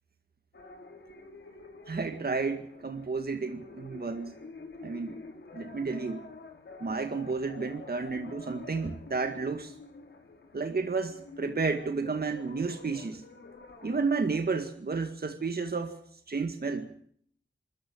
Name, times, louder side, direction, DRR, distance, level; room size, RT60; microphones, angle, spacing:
sound 1, 0.5-14.0, left 3 dB, 70° left, 5.2 m, -48 dB
voice 1, 1.9-4.4 4.8-5.2 5.5-6.2 6.8-9.8 10.5-13.2 13.8-16.0 16.3-16.9, right 4 dB, 55° right, 7 dB, 2.0 m, -31 dB
23.5 x 14.0 x 8.8 m, 0.64 s
cardioid pair, 50°, 20 cm